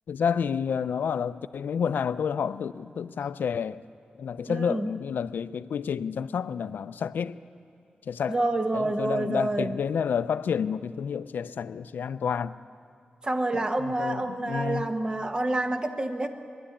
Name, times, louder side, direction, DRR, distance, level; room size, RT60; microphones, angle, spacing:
voice 1, 0.1-3.8 4.2-7.4 8.1-8.4 8.7-12.6 13.5-14.9, left 7 dB, 90° left, 0.5 m, -30 dB
voice 2, 4.5-4.9 8.3-9.8 13.2-16.3, right 2 dB, 25° right, 1.1 m, -28 dB
22.0 x 13.0 x 10.0 m
wide cardioid pair, 85°, 3 cm